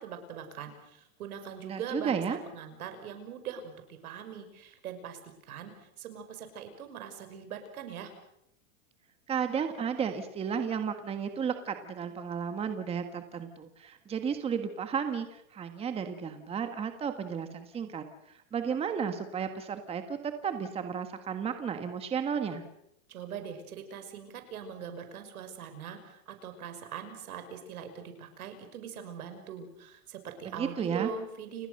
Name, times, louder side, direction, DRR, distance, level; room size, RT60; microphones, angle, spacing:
voice 1, 0.0-8.1 23.1-31.7, right 7 dB, 90° right, 7 dB, 6.0 m, -42 dB
voice 2, 1.6-2.4 9.3-18.0 18.5-22.6 30.6-31.1, right 7 dB, 15° right, 8 dB, 1.5 m, -33 dB
29.5 x 19.5 x 6.7 m, 0.80 s
supercardioid pair, 165°, 42 cm